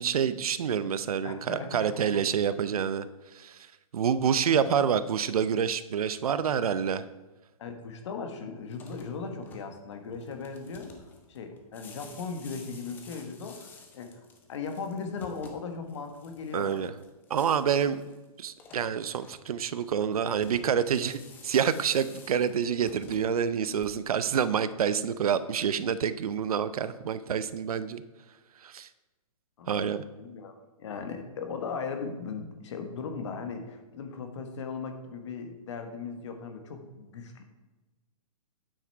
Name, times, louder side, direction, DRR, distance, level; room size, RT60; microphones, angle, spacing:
voice 1, 0.0-3.0 3.3-3.7 3.9-7.0 16.5-16.9 17.3-18.0 18.4-28.0 28.6-28.9 29.7-30.0, right 8 dB, 70° right, 14 dB, 0.6 m, -27 dB
voice 2, 1.2-2.2 4.6-4.9 7.6-10.9 11.3-14.2 14.5-16.9 29.6-30.5 30.8-37.4, left 5 dB, 50° left, 6 dB, 1.3 m, -38 dB
sound 1, 8.6-24.3, left 4 dB, 10° left, 0.6 m, -52 dB
8.9 x 6.0 x 4.5 m, 1.1 s
hypercardioid pair, 160°, 19 cm